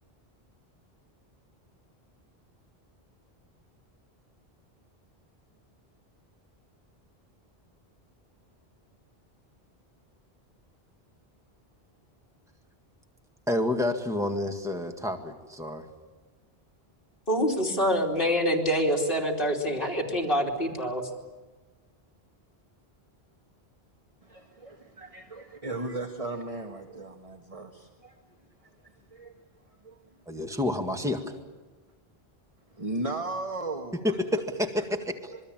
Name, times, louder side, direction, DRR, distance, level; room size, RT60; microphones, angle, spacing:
voice 1, 13.5-15.9 30.3-31.4 34.0-35.3, left 1 dB, 5° right, 4 dB, 1.8 m, -29 dB
voice 2, 17.3-21.1, equal, 60° left, 0 dB, 3.3 m, -26 dB
voice 3, 24.2-28.2 29.1-29.3 29.8-30.0 32.7-34.4 35.3-35.4, right 2 dB, 35° right, 3 dB, 1.6 m, -36 dB
26.5 x 22.0 x 8.9 m, 1.3 s
omnidirectional pair, 1.0 m